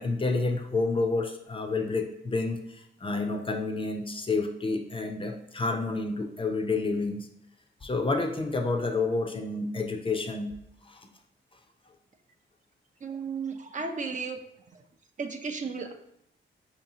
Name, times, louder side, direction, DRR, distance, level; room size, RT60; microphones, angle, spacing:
voice 1, 0.0-7.3 7.8-10.5 10.9-11.1, left 3 dB, 25° left, 5 dB, 0.4 m, -29 dB
voice 2, 13.0-14.4 14.7-14.8 15.2-15.9, right 5 dB, 40° right, 5 dB, 0.4 m, -34 dB
4.7 x 2.7 x 2.7 m, 0.80 s
cardioid pair, 85°, 20 cm